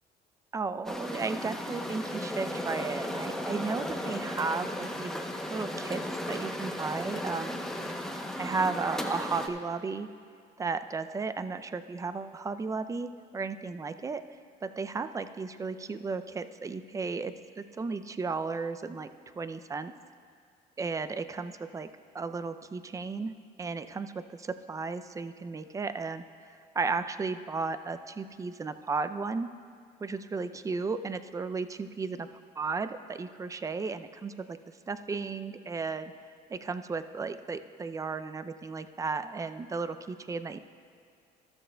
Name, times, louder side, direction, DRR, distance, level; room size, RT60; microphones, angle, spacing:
voice 1, 0.5-5.1 5.5-6.0 6.3-7.6 8.4-10.1 10.6-14.2 14.6-19.1 19.4-19.9 20.8-21.9 22.1-23.3 23.6-29.5 30.0-32.3 32.6-34.6 34.9-36.1 36.5-40.6, right 4 dB, 20° right, 11 dB, 0.4 m, -34 dB
sound 1, 0.8-9.5, left 1 dB, 5° left, 0.8 m, -35 dB
13.0 x 13.0 x 2.2 m, 2.3 s
cardioid pair, 110°, 17 cm